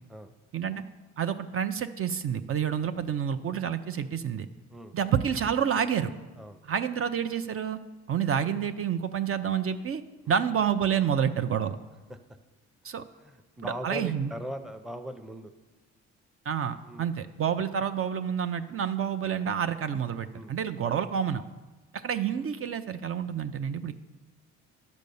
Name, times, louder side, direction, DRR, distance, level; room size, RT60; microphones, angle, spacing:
voice 1, 1.2-4.5 4.9-6.1 6.7-7.8 8.1-10.0 10.3-11.8 12.8-13.0 13.6-14.3 16.5-21.4 21.9-23.9, right 8 dB, 50° right, 9 dB, 0.6 m, -28 dB
voice 2, 6.4-6.7 10.2-10.4 13.2-15.5 16.8-17.1 20.3-20.6, equal, ahead, 7 dB, 0.7 m, -40 dB
10.5 x 5.2 x 6.9 m, 1.2 s
cardioid pair, 90°, 30 cm